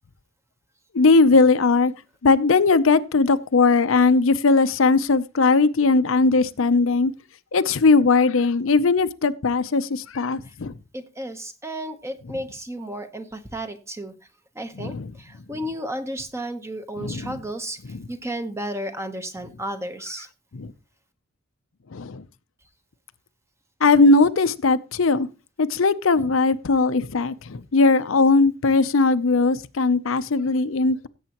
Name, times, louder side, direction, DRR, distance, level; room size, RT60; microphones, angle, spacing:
voice 1, 0.9-1.9 2.2-7.1 7.5-10.8 14.8-15.1 17.0-17.3 17.9-18.0 20.5-20.7 21.9-22.2 23.8-25.3 25.6-31.1, left 3 dB, 85° left, 0.6 m, -19 dB
voice 2, 10.9-14.1 14.5-20.3, right 1 dB, 15° right, 1.0 m, -33 dB
16.5 x 8.0 x 3.0 m
head